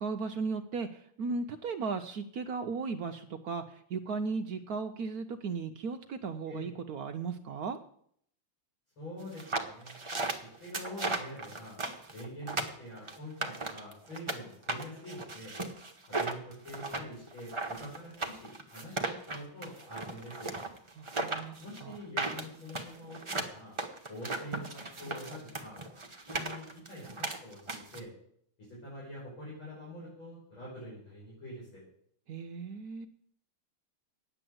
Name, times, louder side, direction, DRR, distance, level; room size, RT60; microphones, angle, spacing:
voice 1, 0.0-7.8 21.0-22.0 32.3-33.1, right 4 dB, 75° right, 6 dB, 0.8 m, -36 dB
voice 2, 9.0-10.0 10.3-11.8 12.1-15.5 16.0-20.5 21.6-23.8 24.1-25.8 26.3-28.1 28.6-31.8, equal, 65° left, -8 dB, 6.4 m, -45 dB
sound 1, 9.3-14.4 14.7-28.0, right 3 dB, 30° right, 0.5 m, -36 dB
9.6 x 9.1 x 7.8 m, 0.67 s
omnidirectional pair, 2.4 m